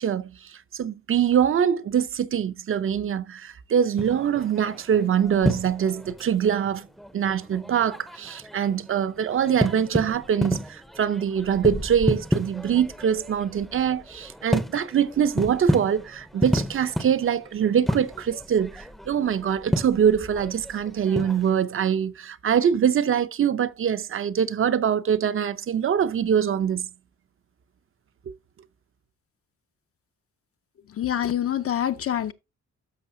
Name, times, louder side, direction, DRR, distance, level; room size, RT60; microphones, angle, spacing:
voice 1, 0.0-6.9 7.1-26.9, right 8 dB, 45° right, 0.6 m, -24 dB
sound 1, 4.0-21.6, equal, ahead, 0.6 m, -31 dB
voice 2, 30.9-32.3, left 10 dB, 50° left, 0.6 m, -26 dB
12.5 x 6.3 x 2.7 m
wide cardioid pair, 175°, 29 cm